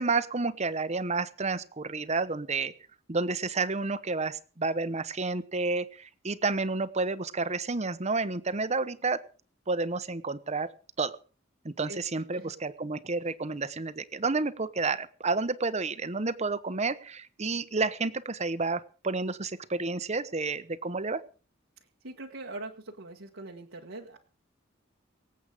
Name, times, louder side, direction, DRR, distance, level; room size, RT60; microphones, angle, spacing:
voice 1, 0.0-2.7 3.1-9.2 9.7-10.7 11.0-11.2 11.6-21.2, right 3 dB, 35° right, 13 dB, 1.0 m, -30 dB
voice 2, 22.0-24.2, right 2 dB, 75° right, -1 dB, 1.5 m, -42 dB
24.5 x 8.2 x 5.0 m, 0.39 s
head